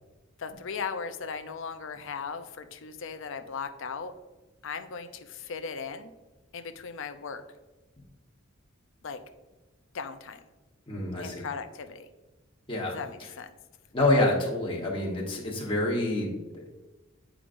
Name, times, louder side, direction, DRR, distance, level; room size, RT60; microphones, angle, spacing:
voice 1, 0.4-4.1 4.6-6.1 6.5-7.4 9.0-9.2 9.9-10.4 11.2-12.1 12.9-13.5, left 5 dB, 65° left, 9 dB, 0.5 m, -37 dB
voice 2, 10.9-11.5 12.7-13.0 13.9-16.7, left 1 dB, 25° left, -3 dB, 1.2 m, -27 dB
8.6 x 4.9 x 2.6 m, 1.1 s
head